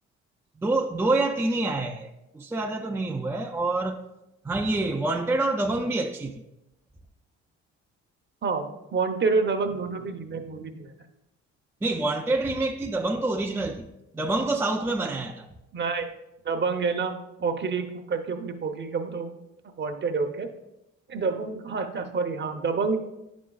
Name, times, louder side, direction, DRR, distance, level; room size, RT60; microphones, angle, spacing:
voice 1, 0.6-2.1 2.3-4.1 4.4-6.4 11.8-13.9 14.1-15.5, right 2 dB, 10° right, 0.3 m, -27 dB
voice 2, 8.4-10.9 15.7-16.1 16.4-17.1 17.4-19.3 19.8-20.5 21.1-23.0, right 4 dB, 35° right, 0.8 m, -28 dB
9.2 x 6.1 x 2.3 m
cardioid pair, 90°, 30 cm